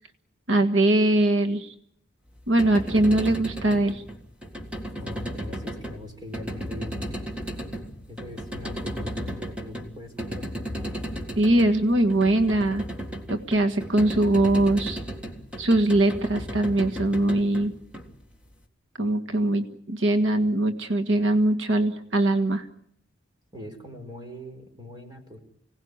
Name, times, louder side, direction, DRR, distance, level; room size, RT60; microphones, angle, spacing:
voice 1, 0.5-1.7 2.5-4.0 11.4-12.8 13.3-15.0 15.6-17.7 19.0-22.7, right 1 dB, 85° right, 6 dB, 1.5 m, -22 dB
sound 1, 2.4-18.5, equal, 5° right, 2.0 m, -35 dB
voice 2, 5.0-7.2 8.1-10.5 23.5-25.4, left 1 dB, 20° right, 4 dB, 4.4 m, -42 dB
25.5 x 18.0 x 9.6 m, 0.70 s
head